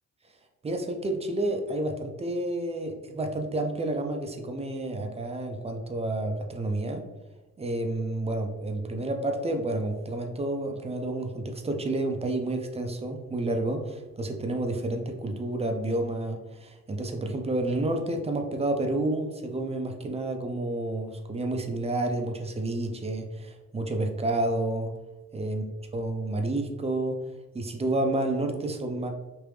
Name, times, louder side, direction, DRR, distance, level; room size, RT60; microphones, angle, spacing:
voice 1, 0.6-7.0 7.6-24.9 25.3-25.6 25.9-27.2 27.5-29.1, right 2 dB, 20° right, 4 dB, 0.5 m, -30 dB
3.3 x 2.5 x 3.2 m, 1.1 s
cardioid pair, 90°, 30 cm